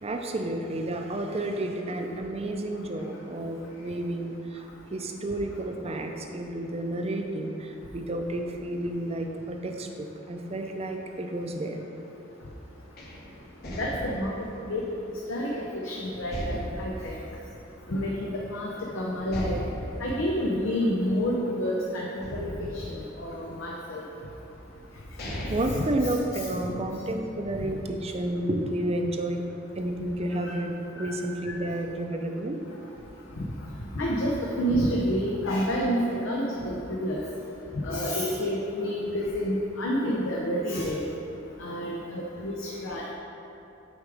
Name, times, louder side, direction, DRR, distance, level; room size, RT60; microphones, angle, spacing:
voice 1, 0.0-4.7 4.9-11.8 25.5-29.4 29.8-32.6, right 1 dB, 30° right, 3 dB, 0.5 m, -31 dB
sound 1, 13.0-15.8 16.3-18.2 18.6-18.7 19.3-21.7 22.2-23.8 24.5-24.6 25.0-26.8, equal, 55° left, 1.1 m, -38 dB
voice 2, 13.8-14.3 14.7-14.8 15.3-17.2 17.9-19.6 20.0-22.8 23.2-24.0 25.7-25.8 31.0-31.2 31.5-31.6 33.4-33.5 33.9-37.3 37.8-41.0 41.6-43.1, equal, 80° left, -3 dB, 0.7 m, -29 dB
8.0 x 4.8 x 3.5 m, 3.0 s
head